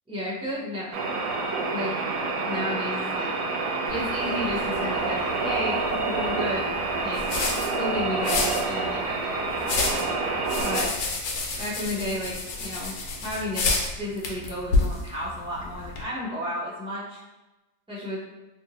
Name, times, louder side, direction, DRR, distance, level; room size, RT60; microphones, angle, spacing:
voice 1, 0.1-0.9 1.7-1.9 2.4-3.3 3.9-6.7 7.0-9.4 10.6-10.9 11.6-13.6 14.0-17.2 17.9-18.2, left 1 dB, 5° right, -9 dB, 0.7 m, -32 dB
sound 1, 0.9-10.8, right 3 dB, 75° right, 1.0 m, -28 dB
sound 2, 3.9-16.0, left 3 dB, 80° left, 1.1 m, -31 dB
2.8 x 2.6 x 2.9 m, 1.1 s
omnidirectional pair, 1.6 m